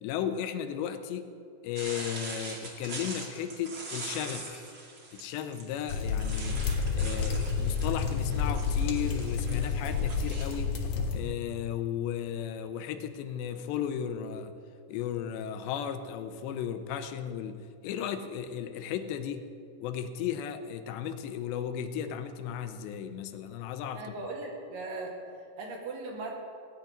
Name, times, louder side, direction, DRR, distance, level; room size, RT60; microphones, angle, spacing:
voice 1, 0.0-1.3 1.6-4.6 5.1-14.6 14.9-19.5 19.8-24.2, left 9 dB, 85° left, 9 dB, 3.0 m, -35 dB
sound 1, 1.8-10.6, right 3 dB, 40° right, 1.9 m, -43 dB
sound 2, 5.9-11.2, left 5 dB, 70° left, 3.4 m, -30 dB
voice 2, 23.9-25.2 25.6-26.3, right 3 dB, 70° right, 0 dB, 3.8 m, -38 dB
17.5 x 6.6 x 9.8 m, 2.4 s
omnidirectional pair, 5.0 m